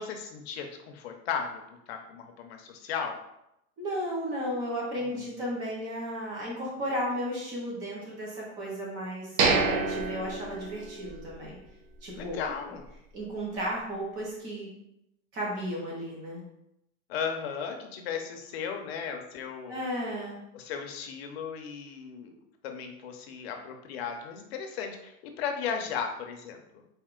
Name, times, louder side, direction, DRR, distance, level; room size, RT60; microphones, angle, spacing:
voice 1, 0.0-1.6 1.9-3.2 5.2-5.4 12.1-12.8 17.1-19.8 20.5-22.3 22.6-26.6, left 6 dB, 50° left, 4 dB, 0.7 m, -36 dB
voice 2, 3.8-11.6 12.0-12.4 13.1-14.7 15.3-16.4 19.7-20.4, equal, 10° right, -3 dB, 0.3 m, -34 dB
sound 1, 9.4-11.3 11.6-11.7 12.2-12.4, right 4 dB, 75° right, 1.0 m, -27 dB
4.4 x 2.8 x 3.7 m, 0.82 s
supercardioid pair, 170°, 40 cm